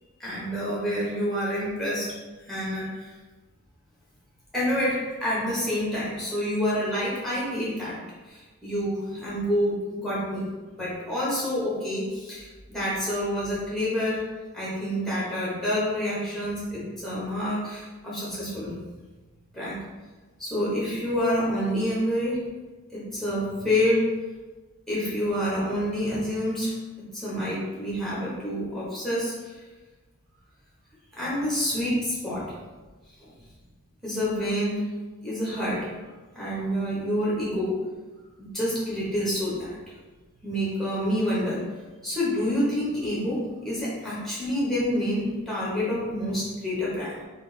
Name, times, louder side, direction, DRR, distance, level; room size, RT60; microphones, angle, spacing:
voice 1, 0.2-2.1 2.4-3.1 4.5-8.0 8.3-10.5 10.7-14.2 14.5-18.7 19.5-19.8 20.4-22.4 22.9-24.1 24.9-26.7 27.1-29.5 31.1-32.5 33.2-33.3 34.0-34.8 35.2-35.9 36.3-37.8 38.5-39.7 40.4-41.6 42.0-47.1, equal, ahead, -8 dB, 1.1 m, -28 dB
3.4 x 2.5 x 3.2 m, 1.3 s
head